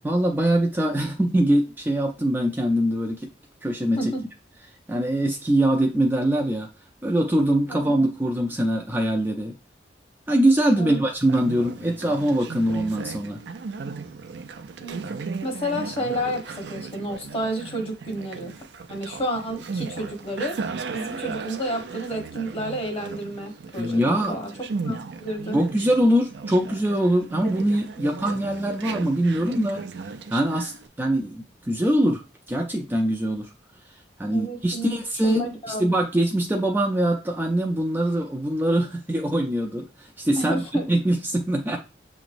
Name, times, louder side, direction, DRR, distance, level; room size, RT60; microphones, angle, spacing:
voice 1, 0.0-3.3 3.6-4.1 4.9-6.7 7.0-9.5 10.3-13.4 23.8-24.3 24.9-25.0 25.5-29.8 30.3-30.7 31.0-32.2 32.5-33.5 34.2-40.6 40.9-41.8, right 1 dB, 10° right, 1 dB, 0.4 m, -23 dB
voice 2, 7.7-8.1 10.7-11.0 14.8-15.0 15.4-18.5 18.9-20.6 20.9-24.5 24.8-25.6 34.3-35.0 35.2-35.9 40.4-40.9, right 1 dB, 30° left, 2 dB, 1.1 m, -30 dB
Conversation, 11.2-30.9, right 4 dB, 70° right, 0.4 m, -36 dB
6.9 x 3.0 x 2.5 m, 0.31 s
head